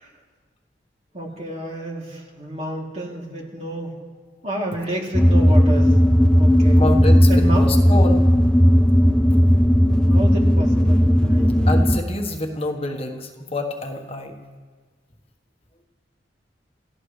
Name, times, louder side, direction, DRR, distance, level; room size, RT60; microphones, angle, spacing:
voice 1, 1.1-4.0 4.4-5.9 6.4-6.8 7.3-7.7 10.1-11.5, right 1 dB, 35° right, -2 dB, 3.0 m, -30 dB
sound 1, 5.1-12.0, equal, 5° left, 0.6 m, -15 dB
voice 2, 6.8-8.2 11.7-14.4, left 2 dB, 35° left, 2 dB, 1.4 m, -27 dB
28.5 x 15.5 x 3.3 m, 1.5 s
head